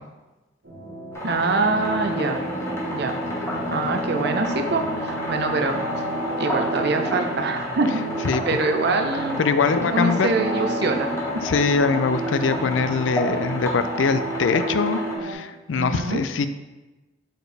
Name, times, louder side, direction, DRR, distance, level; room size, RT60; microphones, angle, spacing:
sound 1, 0.6-15.3, right 2 dB, 85° right, 1.7 m, -33 dB
sound 2, 1.1-15.2, left 1 dB, 15° left, 1.2 m, -32 dB
voice 1, 1.2-2.4 2.9-3.2 3.7-5.8 6.4-8.0 8.5-9.4 9.9-11.1 15.8-16.2, right 3 dB, 60° right, 5 dB, 0.6 m, -24 dB
sound 3, 1.4-15.2, equal, 40° left, 0.9 m, -34 dB
voice 2, 9.4-10.3 11.4-16.5, left 4 dB, 80° left, 10 dB, 0.4 m, -23 dB
6.6 x 4.3 x 3.4 m, 1.1 s
head